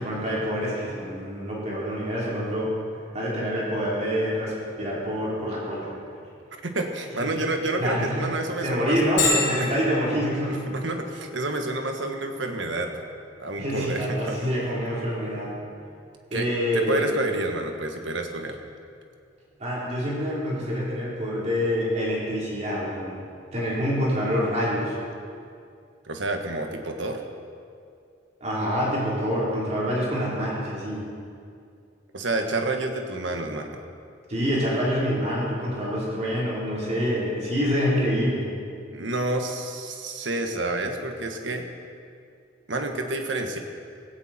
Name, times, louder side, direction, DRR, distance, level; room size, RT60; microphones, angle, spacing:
voice 1, 0.0-2.7 3.1-5.9 7.2-7.3 7.8-8.3 8.6-10.7 13.6-15.6 16.3-17.1 19.6-23.1 23.5-25.0 28.4-31.1 34.3-38.5, equal, 40° right, -6 dB, 4.0 m, -26 dB
voice 2, 6.6-9.1 9.6-9.7 10.5-12.9 13.4-14.5 16.3-16.5 16.7-18.6 26.1-27.2 32.1-33.8 38.9-41.7 42.7-43.6, right 2 dB, 75° right, 4 dB, 1.6 m, -29 dB
Bell, 9.2-24.6, left 3 dB, 75° left, 4.3 m, -37 dB
17.0 x 16.5 x 4.5 m, 2.4 s
head